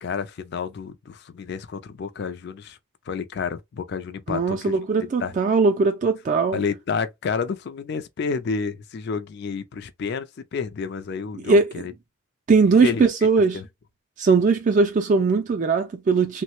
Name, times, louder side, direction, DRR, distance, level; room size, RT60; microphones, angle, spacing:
voice 1, 0.0-2.8 3.1-4.8 5.2-5.4 6.5-11.9 12.8-13.1 13.5-13.7, left 5 dB, 50° left, 0.4 m, -30 dB
voice 2, 4.3-6.6 11.5-11.7 12.5-13.6 14.2-16.4, right 4 dB, 35° right, 0.3 m, -19 dB
3.1 x 2.1 x 2.9 m
head